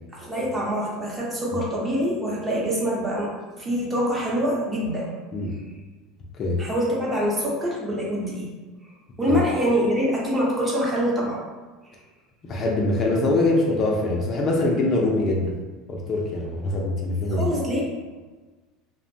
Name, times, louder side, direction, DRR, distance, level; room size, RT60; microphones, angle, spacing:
voice 1, 0.1-5.1 6.6-8.5 9.2-11.4 17.4-17.8, equal, 20° right, -5 dB, 0.8 m, -25 dB
voice 2, 12.5-15.5 15.9-17.5, left 2 dB, 45° left, -2 dB, 0.5 m, -23 dB
2.6 x 2.1 x 2.6 m, 1.3 s
supercardioid pair, 110°, 0 cm